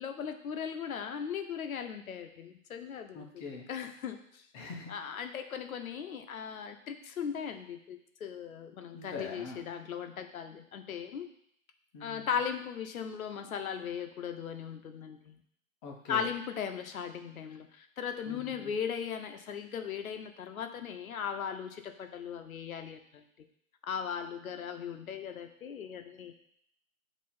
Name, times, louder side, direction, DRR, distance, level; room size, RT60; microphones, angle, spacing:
voice 1, 0.0-3.3 3.7-4.4 4.9-11.3 12.0-15.4 16.1-23.2 23.9-26.3, left 7 dB, 80° left, 7 dB, 0.9 m, -38 dB
voice 2, 3.1-3.7 4.5-4.9 8.9-9.6 11.9-12.4 15.8-16.3 18.3-18.7, left 4 dB, 20° left, 0 dB, 0.9 m, -43 dB
7.5 x 3.0 x 4.3 m, 0.69 s
hypercardioid pair, 150°, 41 cm